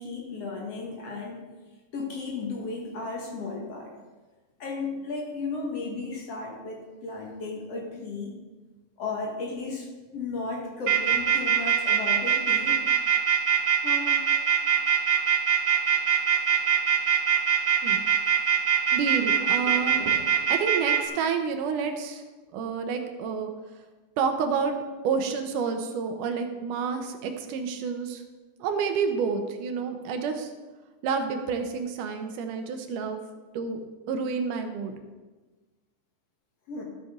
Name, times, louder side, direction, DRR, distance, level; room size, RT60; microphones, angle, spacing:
voice 1, 0.0-1.5 1.9-3.9 4.6-8.3 9.0-12.8 13.8-14.2 36.7-36.8, left 3 dB, 55° left, -1 dB, 2.3 m, -34 dB
sound 1, 10.9-21.0, right 8 dB, 60° right, 2.8 m, -22 dB
voice 2, 18.9-20.0 20.5-22.2 22.5-23.5 24.2-24.7 25.0-28.2 28.6-30.5 31.0-33.2 33.5-33.8 34.1-35.0, right 5 dB, 80° right, 6 dB, 2.4 m, -29 dB
13.0 x 8.3 x 3.7 m, 1.3 s
omnidirectional pair, 3.7 m